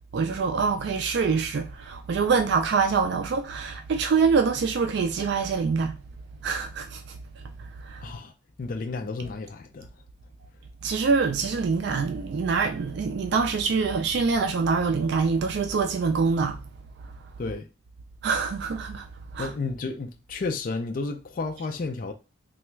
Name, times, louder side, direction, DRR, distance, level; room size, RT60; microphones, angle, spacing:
voice 1, 0.0-6.0 6.4-7.2 7.6-8.0 10.8-16.6 18.2-19.1 19.3-19.5, right 5 dB, 60° right, 0.3 m, -25 dB
voice 2, 8.0-8.3 8.6-9.9 17.4-17.6 19.4-22.1, left 3 dB, 45° left, 0.4 m, -32 dB
3.3 x 2.3 x 3.1 m
head